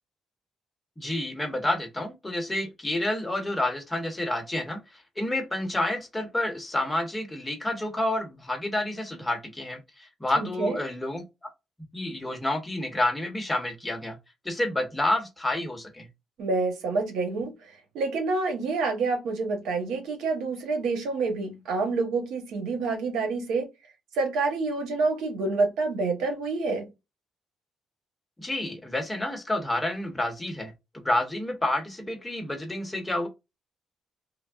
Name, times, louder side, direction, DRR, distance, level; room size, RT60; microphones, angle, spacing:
voice 1, 1.0-4.8 5.2-11.2 11.9-14.2 14.4-16.1 28.4-33.3, left 1 dB, 15° left, 0.9 m, -29 dB
voice 2, 10.4-10.8 16.4-23.7 24.1-26.9, right 3 dB, 85° right, 0.9 m, -28 dB
3.4 x 2.0 x 2.4 m
cardioid pair, 90°, 0 cm